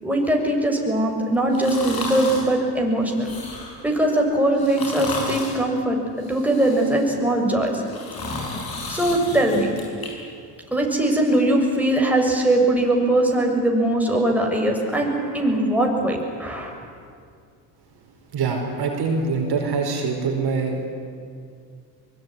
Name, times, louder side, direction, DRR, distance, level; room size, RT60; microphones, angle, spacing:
voice 1, 0.0-3.3 3.8-6.0 6.3-7.8 8.9-9.7 10.7-16.7, right 1 dB, 5° right, 0 dB, 6.8 m, -21 dB
sound 1, 1.5-2.5 3.1-3.8 4.5-5.6 6.2-7.1 7.7-10.1 10.5-10.6, left 3 dB, 50° left, 7.6 m, -33 dB
voice 2, 18.3-20.9, right 4 dB, 55° right, 2 dB, 5.2 m, -24 dB
24.0 x 21.5 x 10.0 m, 2.2 s
supercardioid pair, 70°, 45 cm